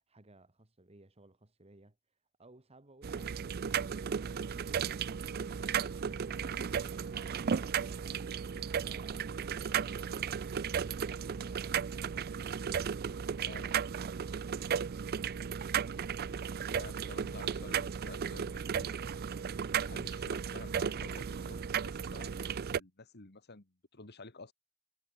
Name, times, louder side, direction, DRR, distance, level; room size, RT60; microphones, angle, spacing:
voice 1, 0.0-2.0 2.4-5.0 5.4-13.5, right 2 dB, 30° right, 1.7 m, -60 dB
sound 1, 3.0-22.8, right 7 dB, 45° right, 0.4 m, -35 dB
voice 2, 13.4-13.8 16.7-19.0 19.4-19.5 19.7-22.5 22.8-24.5, left 3 dB, 50° left, 2.1 m, -51 dB
head